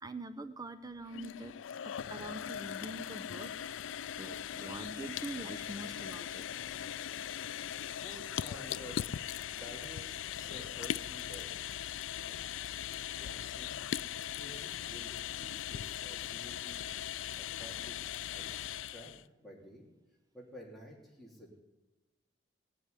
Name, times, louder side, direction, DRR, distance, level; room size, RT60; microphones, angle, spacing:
voice 1, 0.0-1.5 1.8-3.5 4.2-6.4, right 1 dB, 20° right, 11 dB, 0.6 m, -44 dB
sound 1, 1.0-19.2, left 10 dB, 80° left, 0.4 m, -40 dB
voice 2, 7.4-9.0 9.6-11.5 12.2-12.4 13.2-13.7 14.4-16.9 17.3-19.1 19.4-19.9 20.3-21.6, equal, ahead, -4 dB, 3.6 m, -52 dB
16.5 x 8.1 x 9.8 m, 1.1 s
head